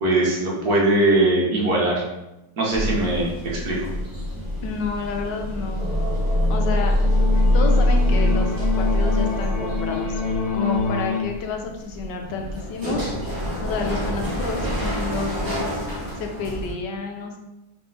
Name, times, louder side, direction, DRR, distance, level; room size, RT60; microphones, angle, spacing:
voice 1, 0.0-2.0 2.6-3.8, right 2 dB, 60° right, -3 dB, 1.4 m, -20 dB
sound 1, 2.7-16.7, left 1 dB, 30° right, 0.3 m, -24 dB
voice 2, 4.6-5.9 6.5-6.9 7.5-10.2 10.5-13.0 13.6-15.8 16.2-17.4, left 4 dB, 80° left, 3 dB, 1.2 m, -30 dB
sound 2, 5.8-11.2, left 4 dB, 45° left, 0.4 m, -27 dB
3.6 x 3.3 x 3.8 m, 0.95 s
omnidirectional pair, 2.0 m